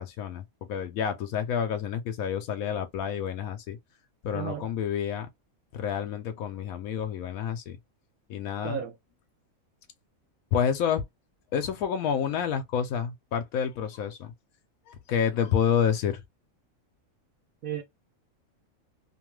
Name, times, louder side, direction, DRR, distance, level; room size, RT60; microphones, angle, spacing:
voice 1, 0.0-3.8 4.2-5.3 5.7-7.8 8.3-8.8 10.5-11.0 11.5-14.3 14.9-16.2, left 8 dB, 85° left, 1.1 m, -29 dB
voice 2, 4.3-4.7 8.6-9.0 17.6-17.8, right 8 dB, 75° right, 1.0 m, -33 dB
2.8 x 2.2 x 3.0 m
omnidirectional pair, 1.5 m